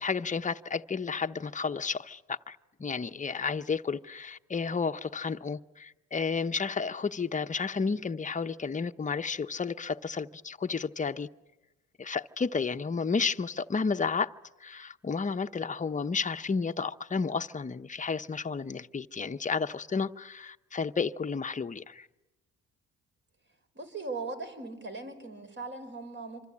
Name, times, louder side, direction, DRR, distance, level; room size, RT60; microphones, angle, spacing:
voice 1, 0.0-11.3 12.0-14.3 14.6-22.1, left 5 dB, 25° left, 0.9 m, -32 dB
voice 2, 23.8-26.4, right 3 dB, 40° right, 5.4 m, -39 dB
26.0 x 25.5 x 8.6 m
cardioid pair, 90°, 30 cm